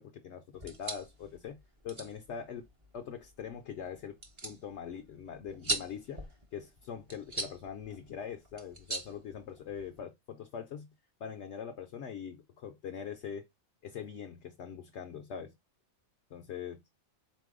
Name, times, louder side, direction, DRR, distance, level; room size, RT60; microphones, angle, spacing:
voice 1, 0.0-1.6 1.8-2.7 2.9-10.9 11.2-13.5 13.8-15.5 16.3-16.8, left 7 dB, 65° left, 0.7 m, -42 dB
sound 1, 0.5-10.0, right 2 dB, 30° right, 0.6 m, -42 dB
4.1 x 2.6 x 3.6 m
omnidirectional pair, 1.4 m